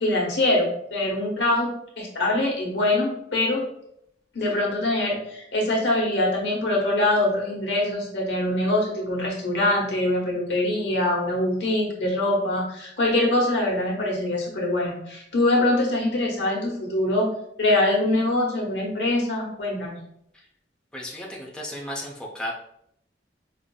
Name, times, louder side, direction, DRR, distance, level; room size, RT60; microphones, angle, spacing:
voice 1, 0.0-1.7 2.0-3.6 4.3-17.3 17.6-20.0, left 1 dB, 70° left, -2 dB, 1.1 m, -23 dB
voice 2, 20.9-22.5, left 1 dB, 5° left, -3 dB, 0.5 m, -34 dB
5.0 x 2.5 x 2.3 m, 0.73 s
head